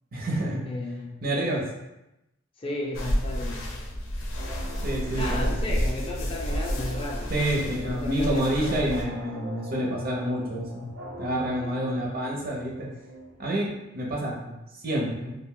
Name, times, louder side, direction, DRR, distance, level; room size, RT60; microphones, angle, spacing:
voice 1, 0.1-0.6 1.2-1.6 4.8-5.5 7.3-10.9 11.2-12.9 13.4-15.4, right 1 dB, 50° right, -2 dB, 0.6 m, -28 dB
voice 2, 0.6-1.2 2.6-3.7 5.1-8.9 9.8-9.9 11.7-12.1, left 2 dB, 30° left, -1 dB, 0.4 m, -34 dB
sound 1, 2.9-9.0, equal, 85° left, 0.5 m, -30 dB
sound 2, 4.3-13.8, right 1 dB, 75° right, 0.9 m, -43 dB
2.4 x 2.2 x 3.6 m, 0.92 s
head